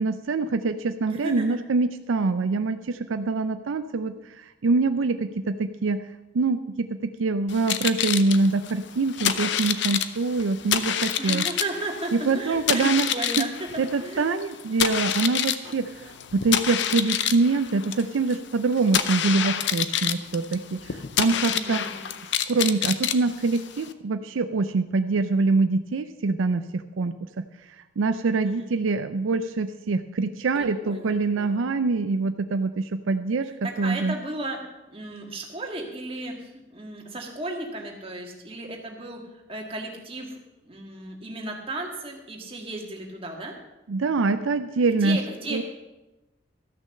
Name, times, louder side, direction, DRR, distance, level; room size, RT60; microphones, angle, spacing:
voice 1, 0.0-6.0 6.3-11.4 12.1-13.1 13.4-13.5 13.8-21.8 22.5-27.4 28.0-33.5 33.8-34.1 43.9-45.2 45.5-45.6, right 3 dB, 75° right, 9 dB, 0.5 m, -25 dB
voice 2, 1.1-1.6 11.2-14.3 21.5-22.1 28.4-28.7 30.8-31.6 33.4-34.6 34.9-40.4 40.6-43.6 45.0-45.6, right 2 dB, 30° right, 1 dB, 1.7 m, -35 dB
sound 1, 7.5-23.9, left 9 dB, 60° left, 0.6 m, -28 dB
13.5 x 6.3 x 6.5 m, 1.0 s
head